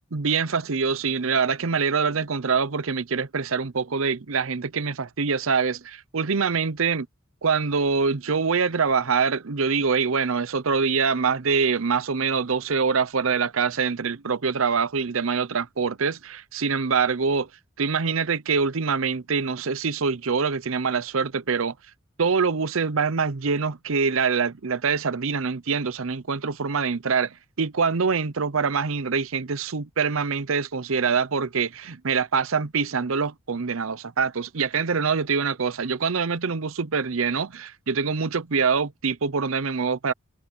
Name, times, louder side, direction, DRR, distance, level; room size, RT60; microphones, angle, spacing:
voice 1, 0.1-7.0 7.4-17.5 17.8-21.7 22.2-40.1, right 5 dB, 75° right, 0.7 m, -24 dB
head